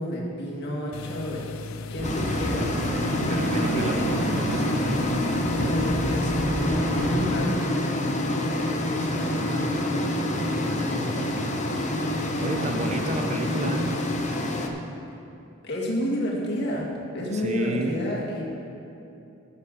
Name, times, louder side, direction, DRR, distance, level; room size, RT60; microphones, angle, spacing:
voice 1, 0.0-2.8 3.7-3.9 5.5-6.7 7.0-7.6 15.6-16.9 17.1-18.4, equal, 55° left, -3 dB, 2.0 m, -30 dB
sound 1, 0.9-6.4, left 3 dB, 85° left, 0.4 m, -37 dB
sound 2, 2.0-14.7, left 1 dB, 35° left, 0.8 m, -27 dB
sound 3, 2.0-7.2, right 1 dB, 85° right, 1.7 m, -30 dB
voice 2, 3.3-4.8 8.9-11.5 12.4-14.0 17.3-18.0, right 1 dB, 35° right, 3 dB, 0.7 m, -32 dB
9.9 x 7.0 x 6.4 m, 2.8 s
head